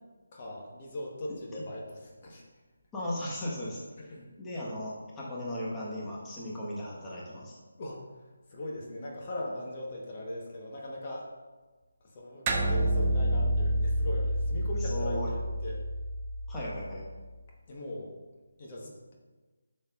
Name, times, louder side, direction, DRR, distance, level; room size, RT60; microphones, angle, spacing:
voice 1, 0.3-2.4 4.0-4.3 7.8-8.0 8.5-11.3 12.0-15.8 17.7-18.1 18.6-19.1, left 1 dB, 35° left, -2 dB, 1.2 m, -39 dB
voice 2, 2.9-3.8 4.4-7.6 14.8-15.3 16.5-17.0, left 1 dB, 10° left, -7 dB, 1.3 m, -36 dB
sound 1, 12.5-17.2, right 1 dB, 20° right, 0.7 m, -29 dB
10.0 x 6.5 x 2.5 m, 1.3 s
figure-of-eight pair, 160°, 0 cm